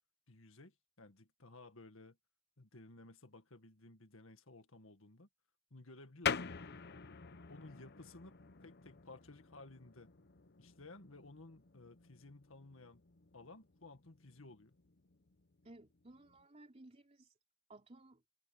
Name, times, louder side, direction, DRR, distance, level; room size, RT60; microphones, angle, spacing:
voice 1, 0.3-2.2 2.6-5.3 5.7-6.6 7.5-8.4 8.6-10.1 10.6-13.0 13.3-14.7, left 2 dB, 70° left, 2.0 m, -56 dB
sound 1, 6.2-16.4, left 7 dB, 55° left, 0.9 m, -46 dB
voice 2, 15.6-17.3 17.7-18.2, right 2 dB, 30° right, 3.4 m, -58 dB
head